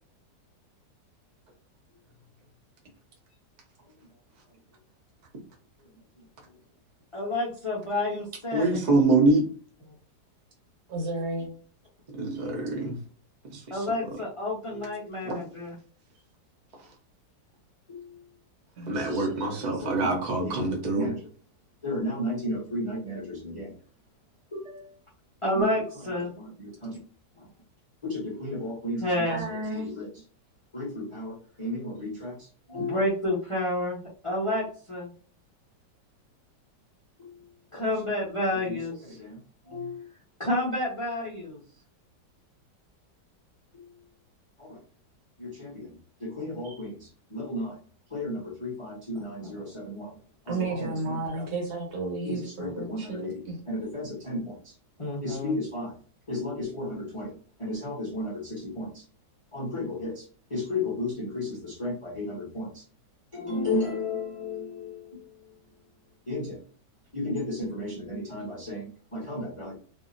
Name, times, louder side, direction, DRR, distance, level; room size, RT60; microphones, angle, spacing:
voice 1, 7.1-8.9 13.7-15.8 17.9-18.2 19.0-19.3 19.8-20.6 20.9-21.3 21.8-23.7 24.5-25.0 25.4-26.9 28.0-30.1 30.7-35.1 37.2-37.3 37.7-39.4 39.7-40.1 40.4-41.6 43.7-43.9 44.6-44.8 45.4-45.9 46.2-47.8 48.1-50.2 50.5-51.5 52.2-54.7 55.0-55.9 56.3-57.3 57.6-59.0 59.5-62.8 63.3-65.3 66.3-66.6 67.1-69.7, left 1 dB, 50° left, 0.3 m, -32 dB
voice 2, 8.5-9.4 12.2-13.0 13.5-13.6 15.2-15.3 18.9-21.1, right 2 dB, 50° right, 0.5 m, -24 dB
voice 3, 10.9-11.5 18.8-19.8 29.3-29.8 50.5-53.6, right 2 dB, 65° right, 1.4 m, -33 dB
2.7 x 2.6 x 2.5 m
omnidirectional pair, 1.9 m